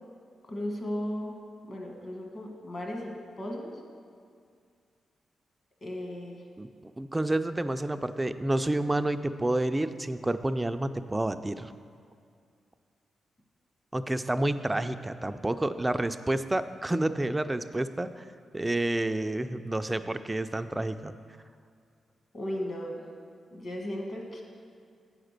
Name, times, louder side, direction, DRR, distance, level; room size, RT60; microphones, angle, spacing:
voice 1, 0.5-1.3 1.7-3.8 5.8-6.4 22.3-23.0 23.5-24.4, left 1 dB, 45° left, 0 dB, 1.6 m, -36 dB
voice 2, 7.0-11.7 13.9-18.2 18.5-21.1, right 1 dB, 15° right, 10 dB, 0.3 m, -29 dB
8.7 x 5.0 x 6.6 m, 2.3 s
cardioid pair, 100°, 0 cm